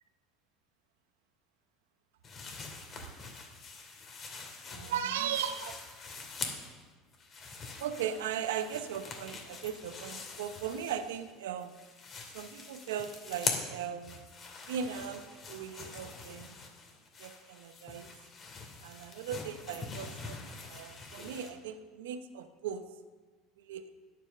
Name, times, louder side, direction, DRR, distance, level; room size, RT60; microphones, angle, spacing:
sound 1, 2.2-6.8 7.1-11.3 11.6-21.5, left 4 dB, 40° left, 2.5 m, -43 dB
voice 1, 4.7-5.8 7.8-11.7 12.3-14.2 14.7-16.6 17.2-18.1 18.8-22.8 23.6-23.9, right 8 dB, 90° right, 10 dB, 0.8 m, -38 dB
9.9 x 8.9 x 6.7 m, 1.4 s
supercardioid pair, 100°, 0 cm